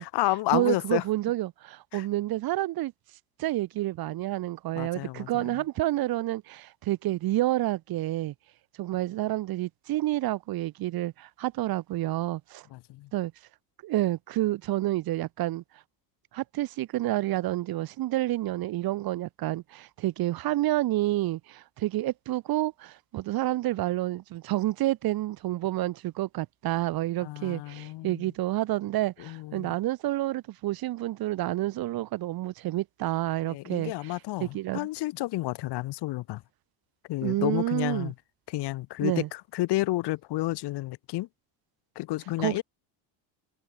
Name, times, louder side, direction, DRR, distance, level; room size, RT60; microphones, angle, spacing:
voice 1, 0.0-1.0 1.9-2.1 4.8-5.6 12.7-13.1 27.2-28.3 29.2-29.7 33.4-36.4 37.1-38.1 38.5-41.3 42.0-42.6, left 18 dB, 60° left, 4.0 m, -31 dB
voice 2, 0.5-2.9 3.4-8.3 8.8-12.7 13.1-13.3 13.8-15.6 16.3-33.9 34.4-34.9 37.2-38.1 39.0-39.3 42.4-42.6, right 15 dB, 50° right, 2.3 m, -29 dB
cardioid pair, 165°, 46 cm